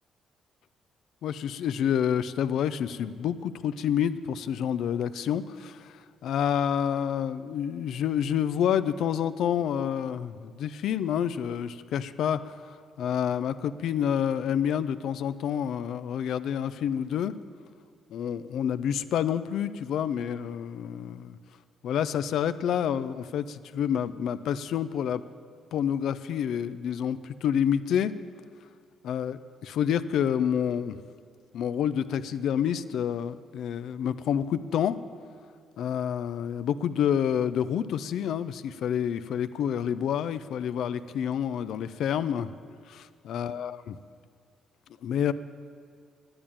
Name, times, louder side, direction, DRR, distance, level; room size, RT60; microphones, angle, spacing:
voice 1, 1.2-5.9 6.2-17.3 18.1-21.4 21.8-25.2 25.7-28.1 29.0-31.0 31.5-35.0 35.8-42.5 42.9-44.0 45.0-45.3, left 9 dB, 75° left, 13 dB, 0.4 m, -28 dB
11.0 x 8.9 x 8.6 m, 2.1 s
cardioid pair, 90°, 0 cm